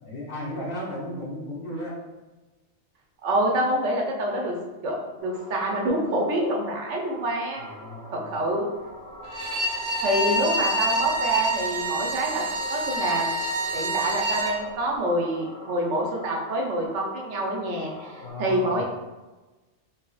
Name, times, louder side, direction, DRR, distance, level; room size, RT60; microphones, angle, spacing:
voice 1, 0.0-2.0 7.6-8.3 18.2-18.8, left 1 dB, 55° left, -3 dB, 0.9 m, -35 dB
voice 2, 3.2-4.6 4.8-7.6 8.1-8.7 10.0-13.3 13.7-18.8, right 1 dB, 85° right, -1 dB, 1.1 m, -26 dB
sound 1, 5.2-18.3, right 1 dB, 5° left, 0.9 m, -44 dB
Bowed string instrument, 9.2-14.6, right 1 dB, 60° right, 0.4 m, -27 dB
4.0 x 2.7 x 2.4 m, 1.2 s
omnidirectional pair, 1.2 m